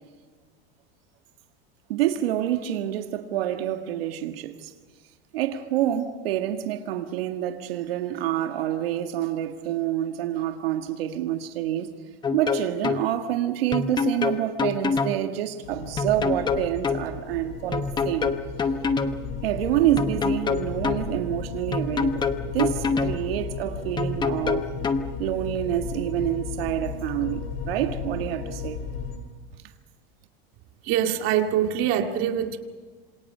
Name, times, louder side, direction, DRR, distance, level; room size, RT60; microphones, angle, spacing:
voice 1, 1.9-4.7 5.3-11.9 12.3-18.3 19.4-24.7 25.2-28.8, right 12 dB, 85° right, 1.9 m, -27 dB
sound 1, 12.2-13.0 13.7-15.2 16.0-17.0 17.7-19.2 20.0-21.0 21.7-23.2 24.0-25.0, left 5 dB, 15° left, 1.0 m, -25 dB
sound 2, 15.6-29.2, left 6 dB, 85° left, 5.2 m, -35 dB
voice 2, 30.8-32.6, right 10 dB, 45° right, 2.4 m, -24 dB
27.5 x 27.0 x 5.6 m
supercardioid pair, 145°, 29 cm